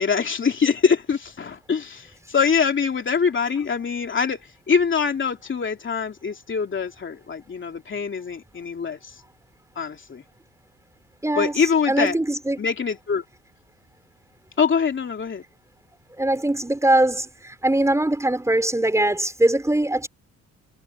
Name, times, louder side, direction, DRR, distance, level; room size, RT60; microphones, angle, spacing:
voice 1, 0.0-9.2 9.7-10.2 11.4-12.2 12.6-13.2 14.6-15.4, left 6 dB, 40° left, 2.9 m, -24 dB
voice 2, 11.2-12.6 16.2-20.1, right 1 dB, 10° right, 5.0 m, -22 dB
cardioid pair, 90°, 30 cm